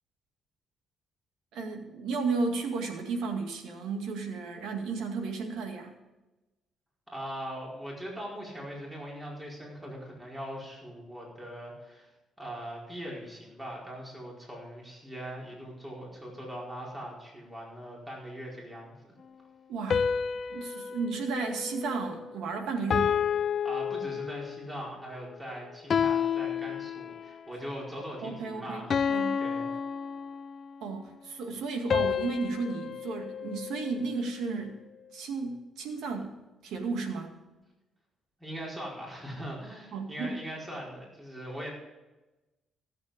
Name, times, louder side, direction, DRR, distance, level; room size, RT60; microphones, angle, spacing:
voice 1, 1.5-5.9 19.7-20.1 20.5-23.2 28.2-29.4 30.8-34.8 35.1-37.3 39.9-40.4, right 4 dB, 80° right, 3 dB, 2.1 m, -33 dB
voice 2, 7.1-12.1 12.4-18.9 20.4-20.6 23.6-29.0 29.4-29.7 38.4-41.7, equal, 15° right, -3 dB, 4.8 m, -41 dB
sound 1, 19.9-22.4 22.9-24.7 25.9-27.4 28.9-30.8 31.9-34.3, left 7 dB, 50° left, 0.4 m, -30 dB
15.5 x 8.3 x 5.1 m, 1.1 s
cardioid pair, 90°, 0 cm